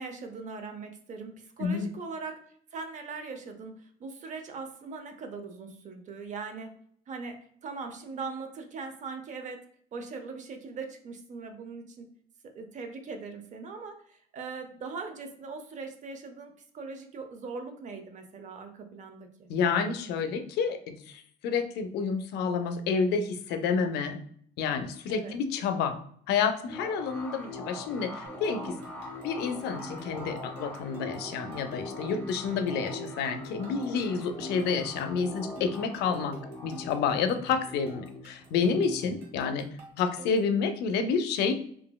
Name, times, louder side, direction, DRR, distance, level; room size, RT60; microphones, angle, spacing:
voice 1, 0.0-2.4 2.7-6.7 7.1-9.6 9.9-12.1 12.5-19.5 25.1-25.4, right 4 dB, 45° right, 6 dB, 0.5 m, -40 dB
voice 2, 19.5-24.2 24.6-26.0 26.3-28.7 29.2-36.4 36.6-39.7 40.0-41.5, left 5 dB, 75° left, 9 dB, 0.4 m, -29 dB
sound 1, 26.7-39.9, left 1 dB, 10° left, 0.7 m, -42 dB
sound 2, 28.3-40.6, right 1 dB, 80° right, 1.2 m, -48 dB
2.9 x 2.6 x 2.2 m, 0.63 s
cardioid pair, 110°, 17 cm